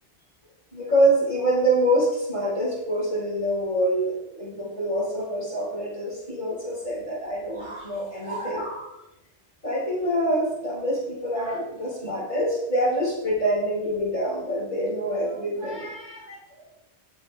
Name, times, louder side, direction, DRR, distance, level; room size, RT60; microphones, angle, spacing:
voice 1, 0.7-8.9 9.6-16.4, right 1 dB, 40° left, -6 dB, 5.1 m, -25 dB
19.0 x 7.9 x 3.4 m, 0.89 s
omnidirectional pair, 1.2 m